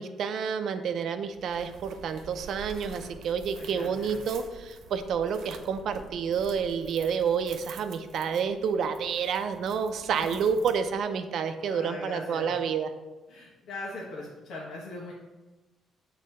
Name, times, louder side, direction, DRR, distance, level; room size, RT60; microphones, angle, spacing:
voice 1, 0.0-12.9, right 6 dB, 70° right, 8 dB, 0.6 m, -29 dB
sound 1, 1.3-11.2, right 4 dB, 90° right, 0.9 m, -48 dB
voice 2, 3.5-4.2 10.0-10.4 11.7-12.5 13.3-15.1, left 2 dB, 75° left, -4 dB, 1.3 m, -40 dB
6.6 x 4.0 x 5.4 m, 1.2 s
cardioid pair, 90°, 0 cm